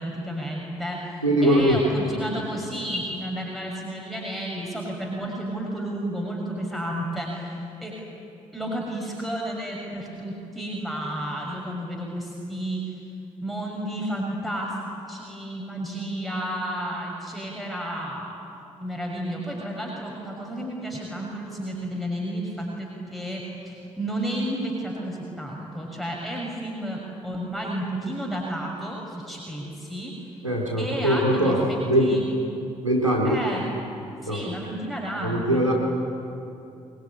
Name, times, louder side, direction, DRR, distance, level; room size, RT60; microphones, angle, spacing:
voice 1, 0.0-7.9 8.5-12.9 13.4-18.3 18.8-30.1 30.8-32.2 33.2-33.7 34.2-35.6, right 1 dB, ahead, -2 dB, 6.4 m, -32 dB
voice 2, 1.2-1.8 30.4-32.1 32.8-33.4 34.3-34.4 35.2-35.7, right 1 dB, 90° right, -2 dB, 2.5 m, -21 dB
26.0 x 22.5 x 9.9 m, 2.7 s
figure-of-eight pair, 45°, 16 cm